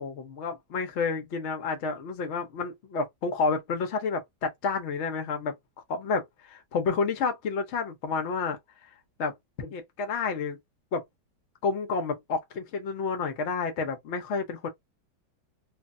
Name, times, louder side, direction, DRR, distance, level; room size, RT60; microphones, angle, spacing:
voice 1, 0.0-5.5 5.9-8.6 9.2-9.3 9.6-10.6 10.9-11.0 11.6-14.7, left 4 dB, 85° left, 0.6 m, -30 dB
3.2 x 2.1 x 2.4 m
omnidirectional pair, 2.2 m